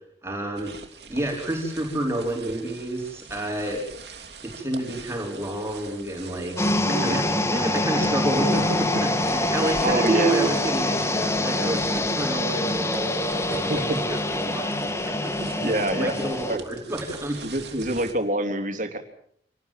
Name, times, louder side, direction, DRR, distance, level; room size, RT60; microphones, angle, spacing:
voice 1, 0.2-0.7 1.1-3.8 4.4-15.3 16.0-17.4 17.7-17.8, right 1 dB, 15° right, 0 dB, 4.6 m, -29 dB
sound 1, 0.6-18.1, right 5 dB, 65° right, 3.2 m, -44 dB
sound 2, 6.6-16.6, left 1 dB, 15° left, 1.6 m, -25 dB
voice 2, 6.8-7.2 9.8-10.4 13.7-14.0 15.4-16.1 16.5-16.6 17.4-19.0, right 1 dB, 45° right, 6 dB, 3.4 m, -26 dB
28.0 x 19.5 x 7.6 m, 0.67 s
head